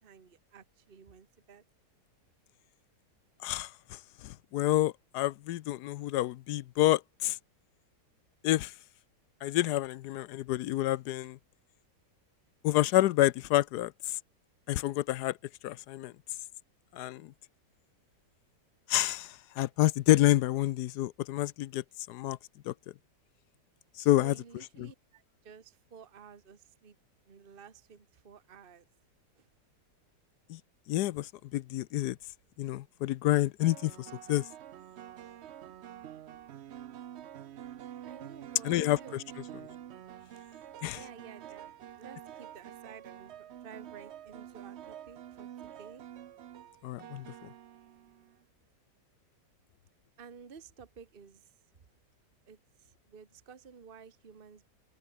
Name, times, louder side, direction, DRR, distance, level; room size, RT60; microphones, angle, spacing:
voice 1, 0.0-1.6 23.9-27.0 27.3-28.9 29.4-29.5 38.0-38.7 39.0-39.2 40.9-46.0 50.2-51.5 52.5-54.7, right 6 dB, 35° right, 1.5 m, -53 dB
voice 2, 3.4-7.4 8.4-8.7 9.4-11.4 12.6-14.2 14.7-15.3 15.6-16.1 16.9-17.3 18.9-22.4 22.7-22.8 24.0-24.3 24.8-24.9 30.5-30.6 30.9-32.2 32.6-34.5 38.6-39.0 40.8-41.0 46.8-47.3, left 15 dB, 75° left, 1.1 m, -28 dB
sound 1, 32.0-32.3 33.6-48.4, right 11 dB, 75° right, 0.6 m, -47 dB
open air
omnidirectional pair, 1.9 m